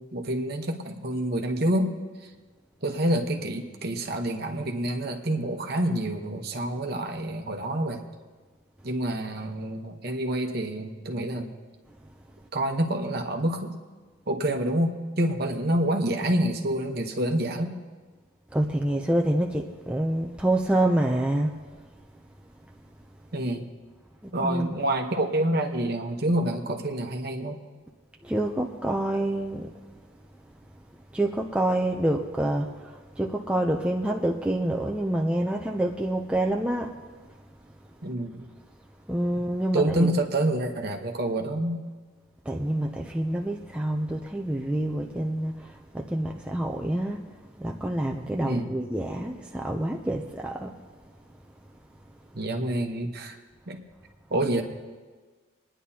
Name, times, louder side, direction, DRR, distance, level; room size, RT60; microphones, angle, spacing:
voice 1, 0.0-1.9 2.8-8.0 8.8-11.5 12.5-13.7 14.3-17.7 23.3-23.7 24.3-27.6 38.0-38.5 39.7-41.8 48.5-48.7 52.3-53.4 53.7-53.8 54.3-54.6, right 1 dB, 50° right, 1.0 m, -27 dB
voice 2, 18.5-21.6 24.4-24.7 28.2-29.7 31.1-37.0 39.1-40.1 42.5-47.2 47.6-50.8, right 1 dB, 5° right, 0.4 m, -27 dB
27.0 x 10.0 x 2.8 m
head